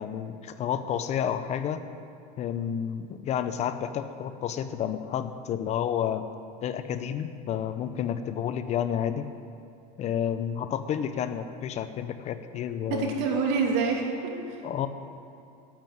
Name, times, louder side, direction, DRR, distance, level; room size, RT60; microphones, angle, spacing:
voice 1, 0.0-1.8 2.4-6.3 6.6-9.3 10.0-13.1 14.6-14.9, left 9 dB, 35° left, 10 dB, 0.6 m, -30 dB
voice 2, 12.9-14.5, right 5 dB, 60° right, 0 dB, 2.7 m, -27 dB
10.5 x 9.3 x 9.2 m, 2.5 s
supercardioid pair, 135°, 20 cm